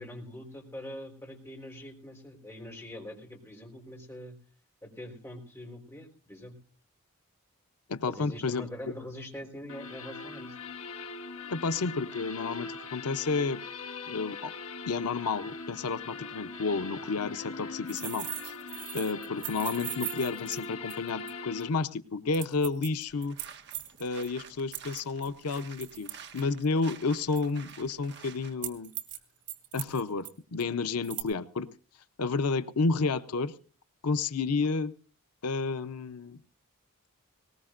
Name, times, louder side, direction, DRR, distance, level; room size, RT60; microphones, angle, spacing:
voice 1, 0.0-4.4 4.8-6.5 8.1-10.6, left 1 dB, 10° left, 0 dB, 4.0 m, -43 dB
voice 2, 7.9-8.7 11.5-13.6 14.1-14.5 14.9-18.6 18.9-23.4 24.0-28.9 29.7-31.7 32.2-33.5 34.0-34.9 35.4-36.4, left 4 dB, 90° left, 11 dB, 0.7 m, -31 dB
sound 1, 9.7-21.7, left 4 dB, 65° left, 1.7 m, -41 dB
sound 2, 17.9-21.3 21.6-21.7 22.3-24.3 24.7-26.7 27.4-27.7 28.6-29.2 29.5-30.3 30.6-30.7 31.0-31.2, right 14 dB, 85° right, 2.2 m, -39 dB
sound 3, 23.1-28.5, right 7 dB, 50° right, 1.1 m, -50 dB
20.5 x 19.0 x 2.5 m, 0.40 s
head